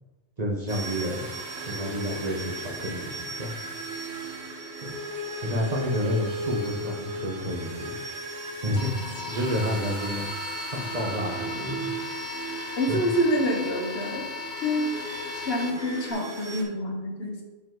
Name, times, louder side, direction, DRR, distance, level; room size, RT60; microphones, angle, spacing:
voice 1, 0.4-3.6 4.8-4.9 5.4-8.1 8.6-8.9 9.3-10.3 10.7-11.9 12.9-13.0, equal, 40° right, -2 dB, 1.1 m, -30 dB
sound 1, 0.7-16.6, right 2 dB, 85° right, 1.4 m, -36 dB
sound 2, 8.7-16.1, left 4 dB, 45° left, 1.1 m, -37 dB
voice 2, 12.8-14.3 14.6-14.9 15.3-17.4, equal, 65° left, 1 dB, 1.4 m, -27 dB
6.9 x 5.3 x 3.8 m, 1.1 s
omnidirectional pair, 1.1 m